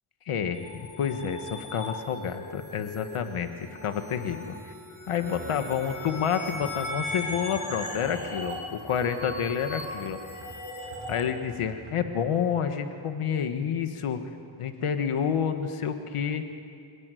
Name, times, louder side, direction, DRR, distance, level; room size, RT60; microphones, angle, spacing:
voice 1, 0.3-4.7 5.1-10.2 11.1-14.2 14.6-16.4, left 7 dB, 85° left, 7 dB, 1.8 m, -29 dB
sound 1, 0.5-11.2, left 2 dB, 35° left, 7.9 m, -39 dB
sound 2, 4.9-12.0, right 3 dB, 70° right, 6.0 m, -48 dB
26.5 x 18.5 x 9.3 m, 2.4 s
cardioid pair, 80°, 50 cm